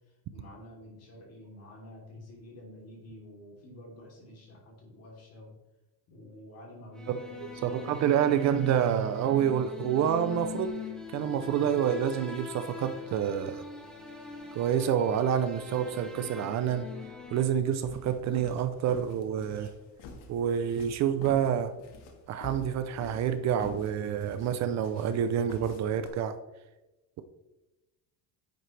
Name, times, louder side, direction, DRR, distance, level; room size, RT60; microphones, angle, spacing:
voice 1, 0.1-5.5 6.1-8.1 14.0-14.3, left 1 dB, 35° left, -2 dB, 3.2 m, -49 dB
sound 1, 7.0-17.4, left 5 dB, ahead, 1.0 m, -43 dB
voice 2, 7.1-10.7 11.1-13.6 14.5-16.9 17.3-19.7 20.3-21.7 22.3-26.3, right 9 dB, 40° right, 10 dB, 0.5 m, -28 dB
sound 2, 17.4-26.1, left 3 dB, 65° left, 1.8 m, -47 dB
10.5 x 7.7 x 3.3 m, 1.0 s
cardioid pair, 170°, 41 cm